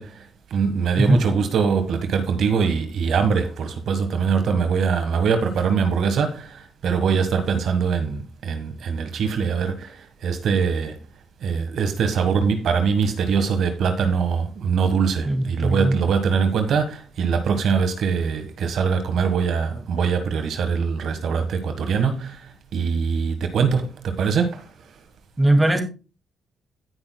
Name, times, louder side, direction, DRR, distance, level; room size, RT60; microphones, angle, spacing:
voice 1, 0.0-11.0 11.4-24.7, right 6 dB, 65° right, 1.4 m, -23 dB
voice 2, 1.0-1.3 15.3-16.0 25.4-25.8, right 1 dB, 15° right, 2.2 m, -20 dB
17.5 x 6.0 x 2.2 m
cardioid pair, 90°, 0 cm